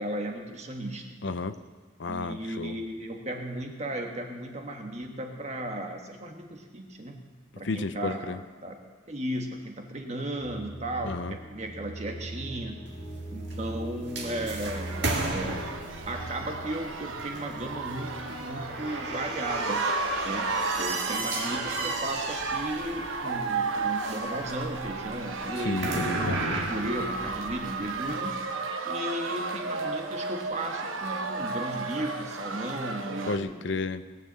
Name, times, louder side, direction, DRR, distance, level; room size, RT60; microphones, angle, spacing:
voice 1, 0.0-1.2 2.1-7.2 7.6-8.7 9.1-12.8 13.3-15.6 16.1-19.8 20.2-26.1 26.7-28.3 28.8-33.8, right 1 dB, 35° right, 3 dB, 1.3 m, -35 dB
voice 2, 1.2-1.6 2.0-2.8 7.6-8.4 11.0-11.3 25.7-26.7 33.3-34.1, left 3 dB, 65° left, 11 dB, 0.6 m, -32 dB
sound 1, 10.4-20.2, right 1 dB, 20° left, 3.5 m, -42 dB
sound 2, 12.9-28.3, right 2 dB, 60° right, 1.8 m, -36 dB
sound 3, 14.6-33.4, right 3 dB, 90° right, 1.1 m, -33 dB
19.5 x 6.6 x 7.4 m, 1.5 s
head